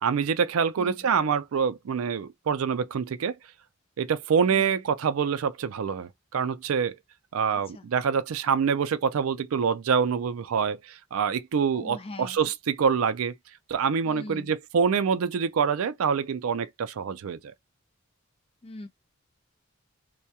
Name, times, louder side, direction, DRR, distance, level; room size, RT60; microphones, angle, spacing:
voice 1, 0.0-3.4 4.0-7.0 7.3-13.4 13.7-17.5, right 6 dB, 90° right, 0.4 m, -26 dB
voice 2, 0.8-1.1 4.4-4.7 7.5-7.9 11.7-12.4 14.1-14.5 18.6-18.9, left 2 dB, 30° left, 0.5 m, -42 dB
2.3 x 2.1 x 2.7 m
head